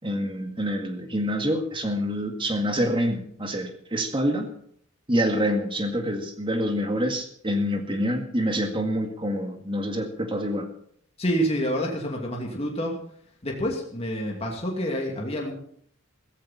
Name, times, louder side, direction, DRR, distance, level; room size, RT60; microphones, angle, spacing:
voice 1, 0.0-4.5 5.1-10.7, equal, 25° right, 5 dB, 1.9 m, -26 dB
voice 2, 11.2-12.9 13.4-15.5, equal, 30° left, -1 dB, 2.6 m, -27 dB
15.5 x 15.5 x 4.3 m, 0.63 s
head